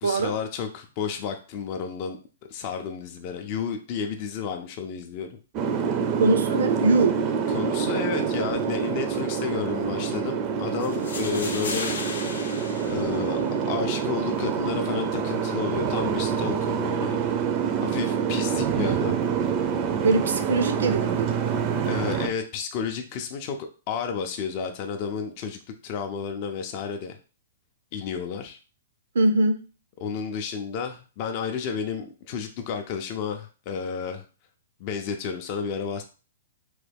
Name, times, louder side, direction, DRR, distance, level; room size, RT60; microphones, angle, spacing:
voice 1, 0.0-2.2 2.5-5.3 7.5-11.9 12.9-13.4 13.7-17.2 17.8-19.2 21.9-23.6 23.9-27.2 27.9-28.6 30.0-34.2 34.8-36.0, left 6 dB, 40° left, 5 dB, 0.4 m, -31 dB
Boat Water vehicle, 5.5-22.3, right 6 dB, 30° right, 0.4 m, -26 dB
voice 2, 6.1-7.2 20.0-21.5 29.1-29.7, right 3 dB, 85° right, 8 dB, 0.5 m, -22 dB
sound 1, 10.8-13.8, left 4 dB, 85° left, 0.7 m, -36 dB
3.1 x 2.2 x 3.4 m, 0.35 s
hypercardioid pair, 150°, 0 cm